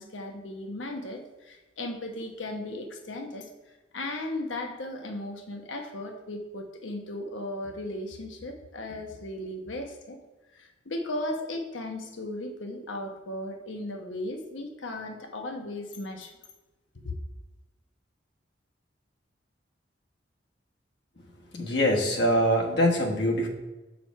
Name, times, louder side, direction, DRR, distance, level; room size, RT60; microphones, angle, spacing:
voice 1, 0.0-3.5 3.9-10.2 10.5-16.3 17.0-17.1, left 1 dB, 90° left, 4 dB, 1.0 m, -36 dB
voice 2, 21.5-23.5, equal, 65° left, 0 dB, 1.3 m, -24 dB
7.2 x 5.0 x 4.6 m, 1.1 s
head